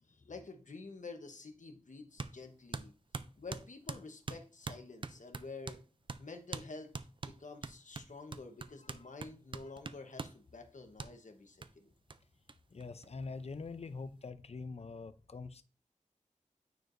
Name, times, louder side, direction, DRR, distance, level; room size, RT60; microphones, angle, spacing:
voice 1, 0.1-2.9 3.4-5.8 6.2-6.9 7.3-11.9, left 3 dB, 70° left, 1.1 m, -49 dB
sound 1, 2.2-2.4 2.7-5.8 6.1-6.2 6.5-6.7 6.9-10.4 11.0-11.1 11.6-11.7 12.1-12.2 12.5-12.6 12.8-13.5, right 4 dB, 40° right, 0.4 m, -43 dB
voice 2, 12.7-15.6, left 4 dB, 50° left, 0.5 m, -44 dB
9.2 x 4.5 x 2.6 m
wide cardioid pair, 70°, 13 cm